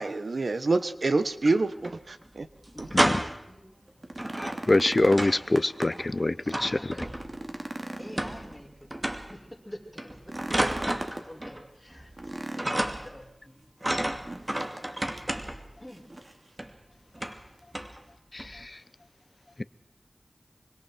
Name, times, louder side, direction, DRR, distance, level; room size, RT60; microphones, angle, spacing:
voice 1, 0.0-1.9 2.4-2.5 2.8-2.9, right 3 dB, 80° right, 11 dB, 1.3 m, -26 dB
sound 1, 1.2-1.9 2.2-2.3 2.6-3.5 4.2-5.5 5.8-7.5 8.2-8.6 8.9-9.4 10.0-11.6 11.9-12.3 12.6-13.2 13.8-15.7 16.6-16.7 17.1-17.5 17.7-18.0 18.4-18.6, right 1 dB, 25° right, 2.5 m, -31 dB
voice 2, 2.7-3.7 6.4-7.1 8.0-10.6 11.2-13.7 14.6-14.8 15.8-16.0, left 1 dB, 15° left, 0 dB, 6.4 m, -47 dB
sound 2, 3.9-6.1 6.5-6.6 7.1-9.0 10.2-11.3 12.2-13.1 14.2-14.9 15.2-15.3 15.9-16.5 17.6-17.7, right 1 dB, 40° right, 2.9 m, -39 dB
voice 3, 4.7-6.3 6.6-6.9 18.3-18.8, left 2 dB, 45° left, 16 dB, 0.9 m, -24 dB
25.5 x 25.0 x 4.6 m, 0.80 s
wide cardioid pair, 50°, 0 cm